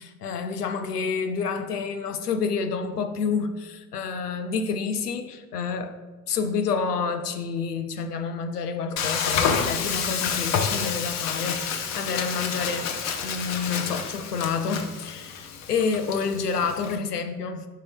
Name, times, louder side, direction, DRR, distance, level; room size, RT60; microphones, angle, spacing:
voice 1, 0.0-6.0 6.3-17.7, left 5 dB, 80° left, 8 dB, 0.7 m, -29 dB
Frying (food), 9.0-17.0, left 6 dB, 35° left, 0.7 m, -29 dB
4.8 x 4.6 x 5.1 m, 1.3 s
figure-of-eight pair, 80°, 46 cm